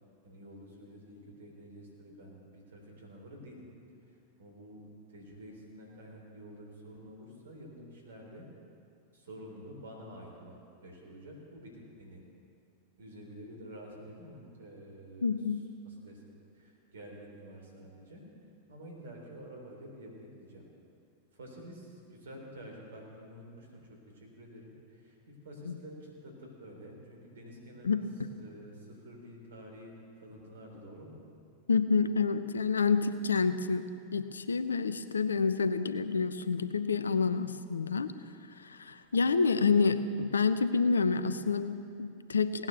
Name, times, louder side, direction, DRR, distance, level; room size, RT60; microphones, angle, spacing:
voice 1, 0.2-3.7 4.1-4.8 5.1-8.5 9.1-12.2 13.0-15.4 15.8-18.2 18.7-20.6 21.3-23.8 24.1-28.0 28.3-31.2, equal, 70° right, 0 dB, 3.6 m, -49 dB
voice 2, 15.2-15.6 25.7-25.8 27.8-28.0 31.7-33.9 34.1-38.1 38.6-42.7, left 5 dB, 80° left, 12 dB, 0.6 m, -28 dB
17.5 x 9.6 x 6.7 m, 2.5 s
figure-of-eight pair, 90°, 0 cm